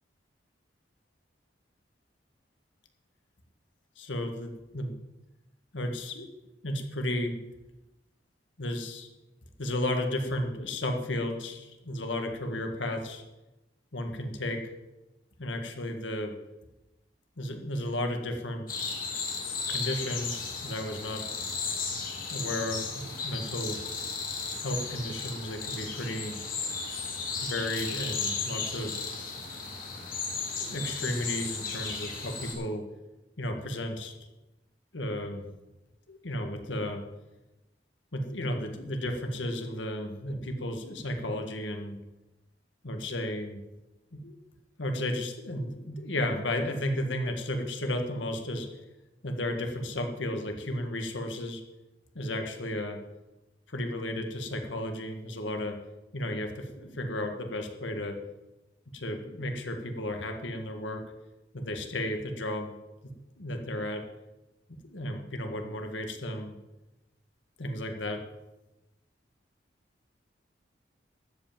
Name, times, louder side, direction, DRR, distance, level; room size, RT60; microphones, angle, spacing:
voice 1, 4.0-4.9 5.7-6.3 6.6-7.4 8.6-9.1 9.6-13.2 13.9-14.6 15.4-16.3 17.4-18.7 19.7-21.2 22.3-23.8 24.6-26.4 27.4-29.0 30.6-32.8 33.4-34.1 34.9-35.4 36.1-37.0 38.1-42.0 42.8-43.6 44.1-44.4 44.8-48.7 49.2-51.6 52.1-53.0 53.7-55.8 56.1-58.2 58.9-61.0 61.5-62.7 63.4-64.0 64.8-66.5 67.6-68.2, left 1 dB, 85° left, 4 dB, 1.7 m, -33 dB
sound 1, 18.7-32.5, left 5 dB, 45° left, 2.5 m, -35 dB
13.0 x 5.7 x 8.9 m, 1.0 s
head